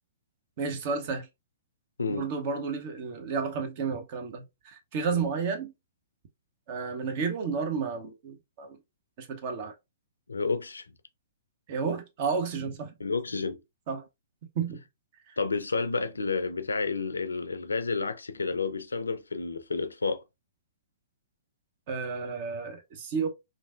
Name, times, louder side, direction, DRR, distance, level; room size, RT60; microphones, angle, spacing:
voice 1, 0.6-1.3 2.1-5.7 6.7-8.8 9.2-9.7 11.7-12.9 13.9-14.0 14.6-14.8 21.9-23.3, right 5 dB, 40° right, 0.7 m, -31 dB
voice 2, 2.0-2.3 5.1-5.3 10.3-10.9 13.0-13.6 15.4-20.2, left 4 dB, 80° left, 0.4 m, -30 dB
3.2 x 2.5 x 2.4 m
figure-of-eight pair, 115°, 0 cm